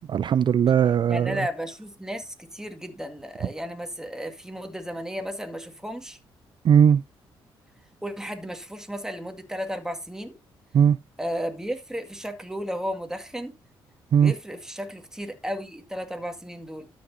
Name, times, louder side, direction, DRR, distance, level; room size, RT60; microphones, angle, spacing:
voice 1, 0.1-1.4 6.6-7.0 10.7-11.0 14.1-14.3, right 8 dB, 50° right, 0.4 m, -18 dB
voice 2, 1.1-6.2 8.0-10.3 11.2-13.5 14.2-16.9, equal, 5° right, 2.1 m, -34 dB
12.5 x 6.3 x 2.7 m
supercardioid pair, 60°, 10 cm